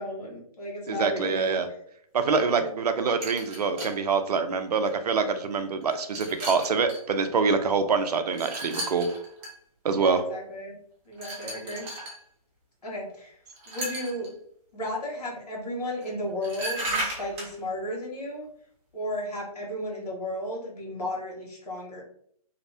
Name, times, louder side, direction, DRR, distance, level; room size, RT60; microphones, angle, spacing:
voice 1, 0.0-1.6 2.2-2.8 10.0-10.7 11.0-11.9 12.8-13.3 13.7-14.3 14.7-18.5 18.9-22.0, left 1 dB, 90° left, -2 dB, 1.3 m, -34 dB
voice 2, 0.9-1.7 2.1-9.1 9.8-10.2, right 5 dB, 85° right, 8 dB, 0.5 m, -25 dB
sound 1, 3.2-4.0 4.8-4.9 5.8-7.0 8.3-9.5 11.2-12.2 13.6-14.3 16.0-16.1 16.4-17.5, right 1 dB, 20° right, 0.5 m, -35 dB
2.8 x 2.0 x 2.6 m, 0.65 s
hypercardioid pair, 155°, 20 cm